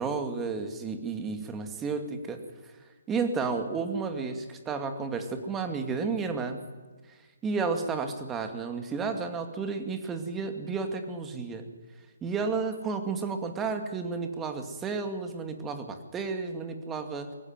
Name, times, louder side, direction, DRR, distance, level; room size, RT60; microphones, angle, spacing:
voice 1, 0.0-2.4 3.1-6.6 7.4-11.7 12.2-17.3, right 4 dB, 15° right, 6 dB, 2.3 m, -32 dB
22.0 x 17.0 x 9.5 m, 1.4 s
figure-of-eight pair, 140°, 0 cm